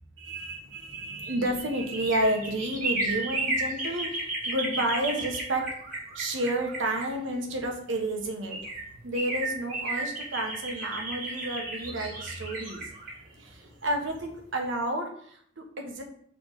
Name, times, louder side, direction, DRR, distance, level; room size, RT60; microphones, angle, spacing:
voice 1, 0.2-5.6 6.1-8.6 9.0-12.8 13.4-16.0, right 1 dB, 85° right, 2 dB, 1.2 m, -31 dB
sound 1, 0.8-7.6 8.2-8.3 8.5-14.3 14.6-14.7, right 2 dB, 45° right, 1.7 m, -34 dB
6.6 x 3.5 x 4.9 m, 0.64 s
head